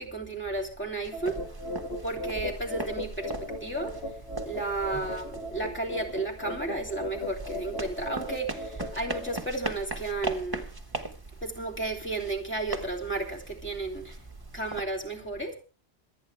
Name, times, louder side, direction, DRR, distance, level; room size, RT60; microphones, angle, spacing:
voice 1, 0.0-1.5 2.0-4.1 4.4-10.7 11.4-14.2 14.5-15.5, right 2 dB, 10° left, 3.1 m, -33 dB
sound 1, 1.0-14.8, right 2 dB, 20° right, 1.5 m, -40 dB
sound 2, 1.1-9.4, left 2 dB, 65° left, 2.2 m, -38 dB
27.5 x 9.2 x 3.4 m
omnidirectional pair, 1.2 m